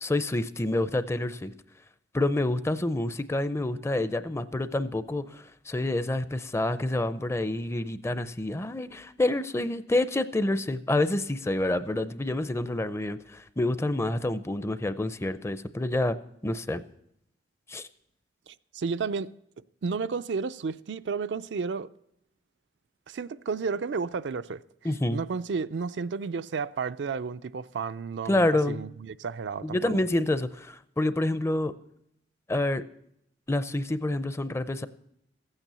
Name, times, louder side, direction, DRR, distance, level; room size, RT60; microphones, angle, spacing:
voice 1, 0.0-1.5 2.1-16.2 16.4-16.8 17.7-17.9 24.8-25.2 28.3-28.8 29.6-31.7 32.5-32.8 33.5-34.9, left 1 dB, 15° left, 0.5 m, -28 dB
voice 2, 18.5-19.3 19.8-21.9 23.1-24.6 25.1-30.0, right 5 dB, 70° right, 0.4 m, -32 dB
15.0 x 9.0 x 6.8 m
head